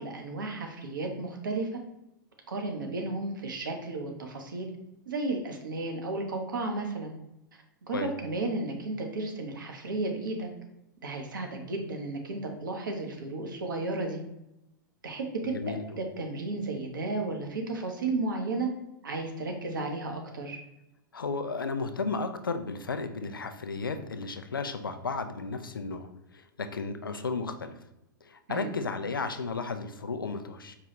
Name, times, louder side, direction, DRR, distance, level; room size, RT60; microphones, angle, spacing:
voice 1, 0.0-1.8 2.5-4.7 5.1-7.1 7.8-10.5 11.0-14.2 15.0-18.7 19.0-20.6 28.5-28.7, right 2 dB, 65° right, 3 dB, 0.8 m, -33 dB
voice 2, 15.4-15.9 21.1-27.7 28.2-30.8, left 4 dB, 80° left, 8 dB, 0.4 m, -34 dB
4.8 x 2.3 x 2.9 m, 0.86 s
figure-of-eight pair, 100°, 11 cm